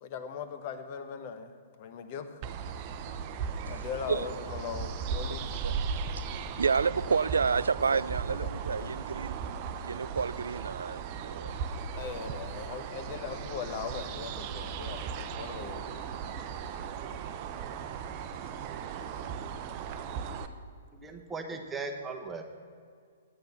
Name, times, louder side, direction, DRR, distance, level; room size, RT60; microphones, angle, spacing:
voice 1, 0.0-1.5 1.8-2.4 3.6-5.4 7.9-8.0 11.5-11.6 11.9-16.0 18.5-18.6, left 7 dB, 40° left, 1.1 m, -39 dB
sound 1, 2.4-20.5, right 6 dB, 35° right, 0.7 m, -37 dB
voice 2, 3.7-4.3 5.6-9.4 9.8-11.5, right 5 dB, 70° right, 0.3 m, -30 dB
voice 3, 20.9-22.4, right 4 dB, 15° right, 1.1 m, -38 dB
9.7 x 8.9 x 6.9 m
figure-of-eight pair, 115°, 0 cm